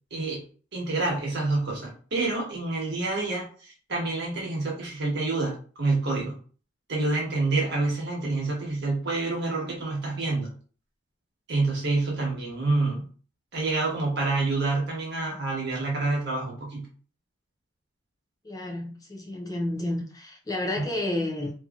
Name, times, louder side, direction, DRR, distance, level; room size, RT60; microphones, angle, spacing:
voice 1, 0.7-6.3 6.9-10.5 11.5-13.1 13.5-16.9 20.7-20.8, right 3 dB, 60° right, 1.1 m, -27 dB
voice 2, 18.4-21.5, left 1 dB, 20° left, 0.5 m, -31 dB
2.8 x 2.7 x 2.3 m
head